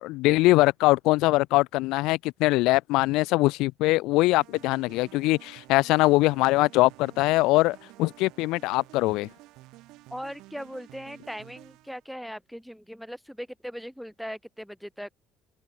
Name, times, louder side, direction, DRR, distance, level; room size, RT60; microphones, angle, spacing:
voice 1, 0.0-9.3, left 20 dB, 80° left, 0.4 m, -22 dB
sound 1, 4.4-12.0, right 19 dB, 75° right, 3.4 m, -51 dB
voice 2, 10.1-15.1, equal, ahead, 1.7 m, -39 dB
cardioid pair, 165°, 0 cm